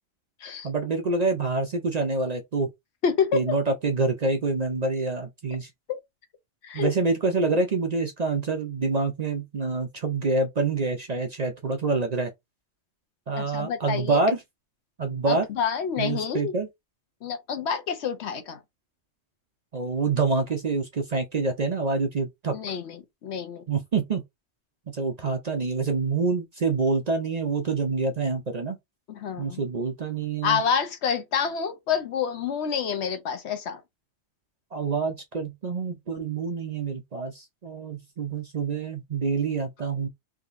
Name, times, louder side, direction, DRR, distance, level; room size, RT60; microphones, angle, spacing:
voice 1, 0.6-2.7 3.3-5.7 6.7-12.3 13.3-14.4 15.0-15.5 16.0-16.7 19.7-22.5 23.7-24.2 24.9-28.8 29.4-30.6 34.7-40.1, right 3 dB, 50° right, 0.5 m, -26 dB
voice 2, 3.0-3.6 5.9-6.0 6.6-6.9 13.4-14.2 15.3-16.5 17.2-18.6 22.5-23.6 29.1-29.6 30.4-33.8, left 7 dB, 65° left, 1.0 m, -28 dB
3.6 x 2.8 x 2.5 m
omnidirectional pair, 1.3 m